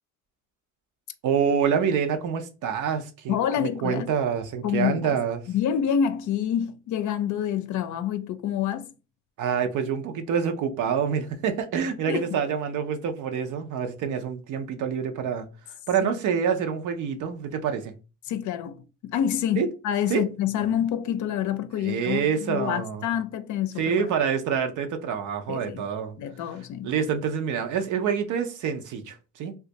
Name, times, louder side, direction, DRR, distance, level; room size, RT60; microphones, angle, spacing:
voice 1, 1.2-5.4 9.4-15.5 15.9-17.9 19.6-19.7 20.1-20.2 21.8-23.1 23.8-26.2 26.8-29.6, right 7 dB, 80° right, 0.6 m, -27 dB
voice 2, 3.3-4.1 4.6-5.2 5.5-8.9 12.1-12.4 16.0-16.1 18.3-24.1 25.5-25.9 26.2-26.9, left 9 dB, 75° left, 0.5 m, -27 dB
2.6 x 2.3 x 3.9 m
cardioid pair, 90°, 30 cm